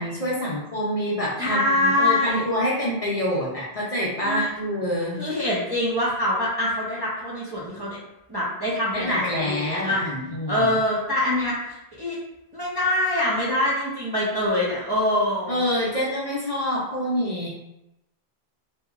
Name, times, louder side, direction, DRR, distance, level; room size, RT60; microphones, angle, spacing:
voice 1, 0.0-5.2 8.9-10.7 15.5-17.5, equal, 45° left, -6 dB, 0.6 m, -26 dB
voice 2, 1.4-2.4 4.2-4.5 5.2-8.0 8.3-10.0 10.5-12.2 12.5-15.6, left 1 dB, 35° right, -7 dB, 0.4 m, -24 dB
2.7 x 2.7 x 2.4 m, 0.90 s
omnidirectional pair, 1.0 m